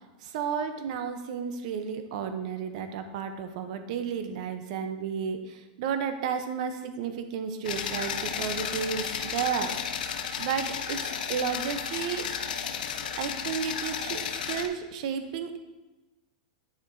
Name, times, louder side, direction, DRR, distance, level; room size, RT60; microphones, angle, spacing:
voice 1, 0.2-12.3 13.2-15.6, right 7 dB, 50° right, 8 dB, 0.6 m, -33 dB
sound 1, 7.6-14.7, left 7 dB, 85° left, 0.6 m, -33 dB
10.0 x 4.3 x 2.6 m, 1.1 s
supercardioid pair, 160°, 5 cm